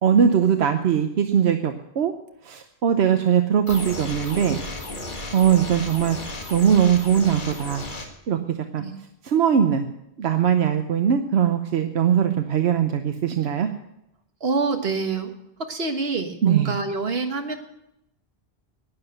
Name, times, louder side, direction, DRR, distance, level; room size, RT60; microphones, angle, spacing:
voice 1, 0.0-2.1 2.4-4.6 5.3-6.2 6.5-7.9 8.3-8.4 8.7-8.8 9.2-9.9 10.2-13.7 16.4-16.8, right 8 dB, 85° right, 7 dB, 1.1 m, -20 dB
sound 1, 3.7-8.1, left 2 dB, 50° left, 1.9 m, -34 dB
voice 2, 14.4-15.3 15.7-17.5, right 4 dB, 70° right, 5 dB, 1.6 m, -26 dB
11.5 x 9.9 x 7.9 m, 0.82 s
omnidirectional pair, 1.1 m